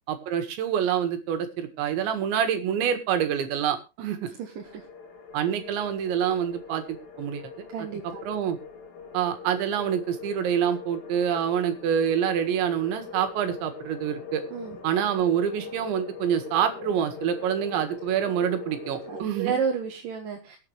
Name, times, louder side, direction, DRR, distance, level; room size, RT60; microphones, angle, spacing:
voice 1, 0.1-4.3 5.3-7.5 7.8-7.9 8.3-8.6 9.1-14.4 14.8-19.6, right 9 dB, 80° right, 7 dB, 4.0 m, -26 dB
voice 2, 4.4-4.9 7.7-8.2 14.5-14.8 19.1-20.6, right 6 dB, 60° right, 2 dB, 2.6 m, -31 dB
sound 1, 4.6-19.2, left 5 dB, 55° left, 3.9 m, -42 dB
23.5 x 8.4 x 3.3 m, 0.30 s
omnidirectional pair, 5.1 m